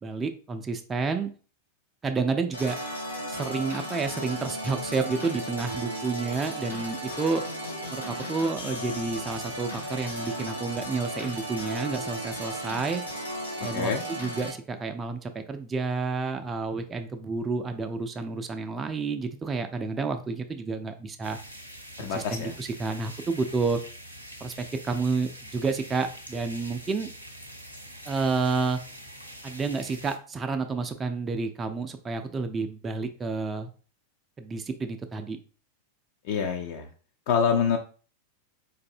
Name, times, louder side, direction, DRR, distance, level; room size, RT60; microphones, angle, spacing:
voice 1, 0.0-1.3 2.0-2.8 3.3-7.4 7.9-13.0 13.6-21.4 22.0-23.8 24.4-27.1 28.1-28.8 29.4-33.7 34.4-35.4, right 4 dB, 20° right, 6 dB, 0.3 m, -30 dB
sound 1, 2.5-14.5, equal, 90° left, 0.9 m, -35 dB
voice 2, 13.6-14.0 22.0-22.6 36.2-36.9 37.3-37.8, left 6 dB, 50° left, 3 dB, 0.4 m, -26 dB
Light drizzle with crickets uncompressed, 21.2-30.2, equal, 90° right, 0.5 m, -45 dB
4.0 x 2.6 x 2.6 m, 0.39 s
figure-of-eight pair, 90°, 0 cm